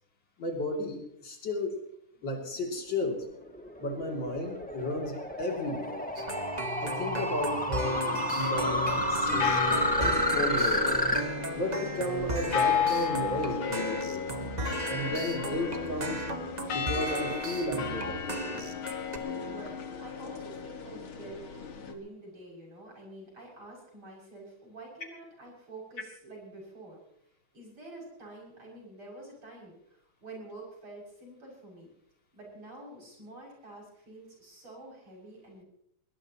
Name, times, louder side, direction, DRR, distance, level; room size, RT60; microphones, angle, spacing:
voice 1, 0.4-1.8 2.2-3.2 3.8-6.0 6.8-11.0 11.6-14.3 14.9-16.2 16.7-18.4, left 1 dB, 60° left, 1 dB, 3.5 m, -33 dB
sound 1, 3.2-11.2, left 1 dB, 5° left, 1.3 m, -30 dB
sound 2, 6.2-19.2, right 2 dB, 25° right, 1.3 m, -36 dB
sound 3, 7.8-21.9, left 6 dB, 90° left, 2.5 m, -34 dB
voice 2, 19.5-21.5 21.7-27.0 27.5-31.9 32.3-35.6, right 2 dB, 85° right, -2 dB, 7.7 m, -48 dB
21.0 x 20.5 x 3.0 m, 0.74 s
omnidirectional pair, 2.2 m